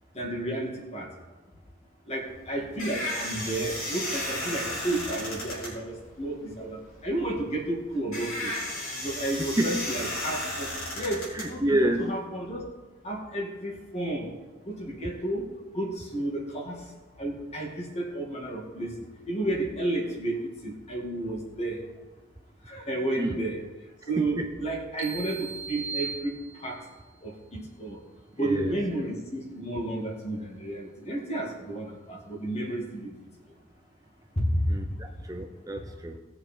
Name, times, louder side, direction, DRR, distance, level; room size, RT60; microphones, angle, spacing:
voice 1, 0.2-1.1 2.1-8.5 9.0-12.6 13.0-14.3 14.7-15.5 15.7-16.8 17.2-18.9 19.3-21.8 22.7-23.6 24.1-26.4 26.6-26.8 27.2-28.0 28.4-33.1 34.4-34.6, right 1 dB, 30° left, 0 dB, 2.2 m, -32 dB
sound 1, 2.2-12.2, left 1 dB, 90° left, 4.3 m, -34 dB
voice 2, 11.3-12.1 23.2-23.4 24.2-24.5 28.4-28.8 34.7-36.2, right 1 dB, 15° right, 3 dB, 0.6 m, -28 dB
sound 2, 25.0-26.9, right 5 dB, 60° right, 2.1 m, -37 dB
18.5 x 6.9 x 4.4 m, 1.3 s
head